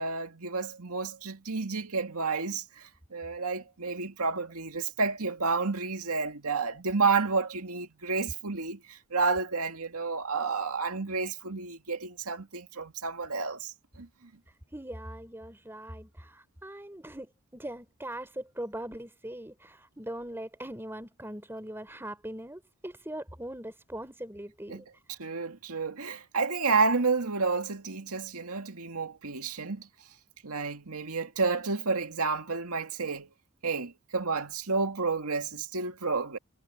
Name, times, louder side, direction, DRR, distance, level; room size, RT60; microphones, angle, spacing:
voice 1, 0.0-14.1 24.7-24.8 25.1-29.9 30.4-33.3 33.6-36.4, right 4 dB, 85° right, 2.1 m, -30 dB
voice 2, 14.7-24.9, right 1 dB, 10° right, 3.6 m, -41 dB
head